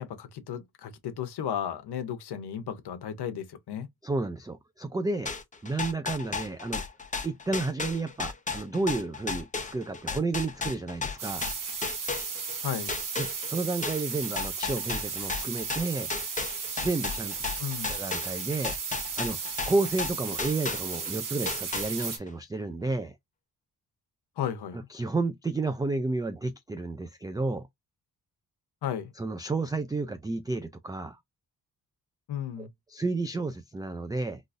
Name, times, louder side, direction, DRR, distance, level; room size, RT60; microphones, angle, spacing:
voice 1, 0.0-3.9 12.6-12.9 17.6-17.9 24.4-24.9 28.8-29.1 32.3-32.7, left 9 dB, 85° left, 0.9 m, -34 dB
voice 2, 4.0-5.3 5.6-6.8 7.2-11.5 13.2-16.1 16.8-17.6 17.9-18.8 19.2-23.2 24.9-27.7 29.2-31.2 32.6-34.4, right 3 dB, 10° right, 0.3 m, -31 dB
sound 1, 5.3-12.6 12.9-21.1 21.5-22.3, left 4 dB, 20° left, 0.7 m, -34 dB
sound 2, 11.2-22.2, right 5 dB, 55° right, 1.2 m, -35 dB
3.9 x 2.4 x 2.5 m
wide cardioid pair, 120°, 38 cm